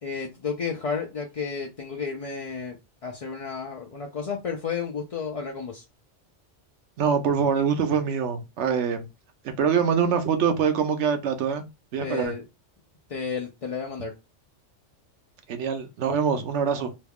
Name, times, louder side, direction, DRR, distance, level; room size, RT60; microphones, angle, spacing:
voice 1, 0.0-2.8 3.0-5.8 12.0-12.4 13.1-14.1, left 5 dB, 50° left, 0.4 m, -32 dB
voice 2, 7.0-9.1 9.6-11.6 11.9-12.3 15.5-16.9, right 7 dB, 75° right, 0.9 m, -24 dB
3.1 x 2.3 x 3.4 m
omnidirectional pair, 1.2 m